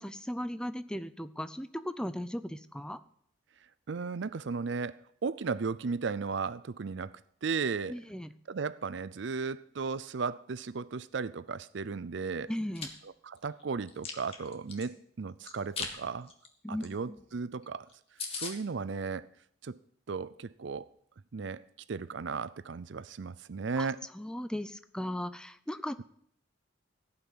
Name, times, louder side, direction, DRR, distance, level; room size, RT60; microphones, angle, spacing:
voice 1, 0.0-3.0 7.9-8.3 12.5-12.9 16.6-17.2 23.8-23.9 24.1-26.0, equal, 5° left, 0.5 m, -37 dB
voice 2, 3.9-8.0 8.5-12.5 13.0-16.3 16.7-17.9 18.3-19.3 19.6-19.8 20.1-20.9 21.3-21.6 21.9-24.0, right 5 dB, 65° right, 0.5 m, -35 dB
Chewing mastication, 12.5-12.9 13.4-14.9 15.4-15.9 16.3-16.5 16.8-16.9 17.2-17.3 17.6-17.7 17.9-18.0 18.2-18.5, left 5 dB, 30° left, 1.8 m, -38 dB
16.5 x 5.9 x 9.7 m
head